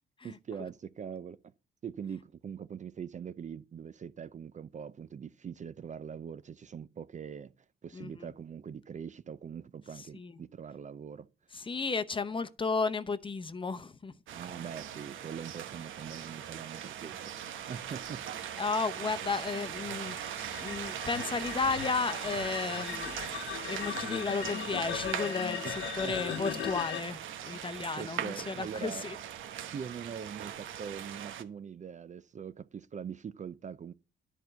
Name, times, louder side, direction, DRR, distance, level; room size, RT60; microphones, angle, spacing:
voice 1, 0.2-1.5 1.8-7.5 7.8-11.3 14.3-18.4 25.6-26.2 28.0-29.1 29.7-33.9, right 7 dB, 35° right, 0.5 m, -42 dB
voice 2, 7.9-8.3 10.1-10.3 11.5-14.1 18.6-23.2 23.4-29.1, left 4 dB, 25° left, 0.8 m, -34 dB
sound 1, 14.3-31.4, right 10 dB, 80° right, 1.1 m, -40 dB
sound 2, 17.7-27.0, left 11 dB, 70° left, 0.7 m, -39 dB
11.0 x 4.6 x 6.6 m
cardioid pair, 90°, 20 cm